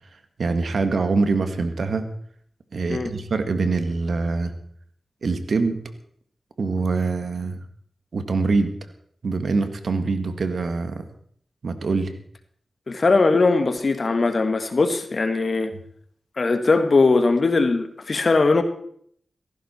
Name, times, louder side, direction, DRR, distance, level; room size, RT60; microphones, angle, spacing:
voice 1, 0.4-2.1 2.7-4.5 5.2-5.8 6.6-7.6 8.1-8.7 9.2-11.0 11.6-12.2, right 3 dB, 75° right, 1.7 m, -24 dB
voice 2, 12.9-15.7 16.4-18.6, left 3 dB, 60° left, 1.8 m, -20 dB
16.5 x 14.5 x 4.4 m
cardioid pair, 55°, 0 cm